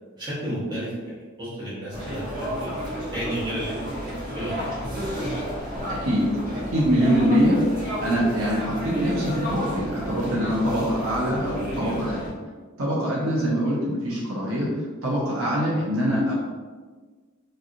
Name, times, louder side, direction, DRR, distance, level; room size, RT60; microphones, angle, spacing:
voice 1, 0.2-3.8 4.3-4.6 5.2-5.3 11.8-11.9, right 1 dB, 20° right, -10 dB, 1.3 m, -32 dB
sound 1, 1.9-12.3, equal, 40° right, 1.1 m, -32 dB
voice 2, 6.7-12.3 12.8-14.8 15.0-16.3, equal, 75° right, -6 dB, 0.9 m, -24 dB
3.2 x 2.7 x 2.5 m, 1.4 s
head